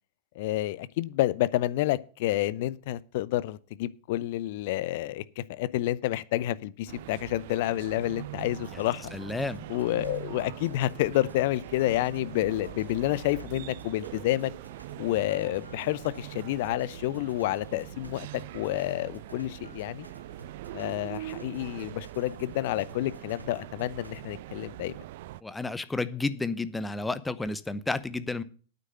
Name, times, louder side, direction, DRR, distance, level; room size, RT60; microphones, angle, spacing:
voice 1, 0.4-9.1 9.7-14.5 15.0-18.3 18.5-20.1 20.7-25.0, left 15 dB, 50° left, 0.5 m, -29 dB
sound 1, 6.9-25.4, right 15 dB, 50° right, 0.4 m, -43 dB
sound 2, 8.4-24.4, equal, 90° right, 1.0 m, -52 dB
voice 2, 9.1-9.7 25.4-28.4, left 3 dB, 10° left, 0.7 m, -31 dB
9.1 x 6.6 x 7.7 m
figure-of-eight pair, 90°, 0 cm